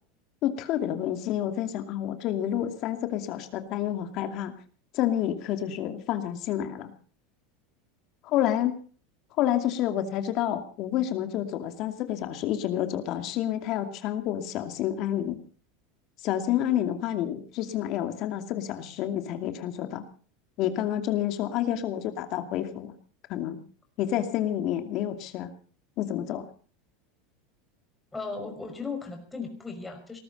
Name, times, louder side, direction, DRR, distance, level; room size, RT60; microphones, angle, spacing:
voice 1, 0.4-4.5 4.9-6.9 8.2-8.7 9.4-15.4 16.2-20.0 20.6-22.9 23.3-23.6 24.0-25.5 26.0-26.4, left 11 dB, 50° left, 7 dB, 2.5 m, -29 dB
voice 2, 28.1-30.2, left 4 dB, 10° left, 3 dB, 5.6 m, -36 dB
19.5 x 13.0 x 5.4 m, 0.42 s
supercardioid pair, 125°, 0 cm